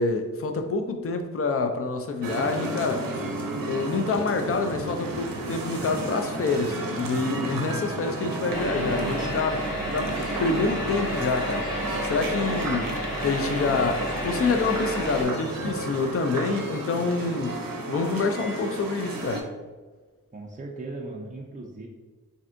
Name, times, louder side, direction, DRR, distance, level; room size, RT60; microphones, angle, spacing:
voice 1, 0.0-3.1 3.7-9.6 9.9-10.1 10.4-11.7 12.0-12.9 13.2-17.6 17.9-19.5, left 4 dB, 45° left, 6 dB, 0.4 m, -27 dB
sound 1, 2.2-19.4, right 2 dB, 80° right, 0.5 m, -32 dB
sound 2, 8.5-15.2, equal, 80° left, 1.2 m, -31 dB
voice 2, 20.3-21.9, right 2 dB, 25° right, -1 dB, 0.4 m, -37 dB
3.3 x 2.6 x 2.5 m, 1.3 s
wide cardioid pair, 65°, 33 cm